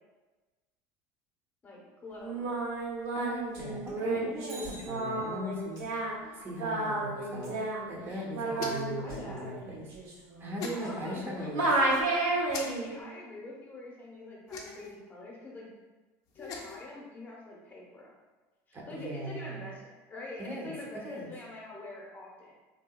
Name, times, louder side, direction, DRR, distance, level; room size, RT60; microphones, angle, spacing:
voice 1, 1.6-2.5 6.2-6.5 8.4-9.5 10.7-11.9 12.7-15.7 16.3-18.1 18.7-22.5, left 2 dB, 20° left, -3 dB, 0.8 m, -45 dB
Singing, 2.2-11.2 11.5-12.9, right 2 dB, 85° right, 1.1 m, -32 dB
voice 2, 3.1-5.9 6.3-7.6 7.9-9.9 10.4-11.7 18.7-19.7 20.4-20.7 21.0-21.3, equal, 30° right, -2 dB, 0.6 m, -39 dB
Bicycle, 4.4-5.8 14.1-14.2, right 2 dB, 60° right, 0.9 m, -50 dB
sound 1, 8.5-9.0 10.6-10.8 12.5-12.6 14.5-14.9 16.3-16.8, left 4 dB, 50° left, 0.5 m, -39 dB
3.2 x 2.7 x 2.2 m, 1.2 s
supercardioid pair, 130°, 8 cm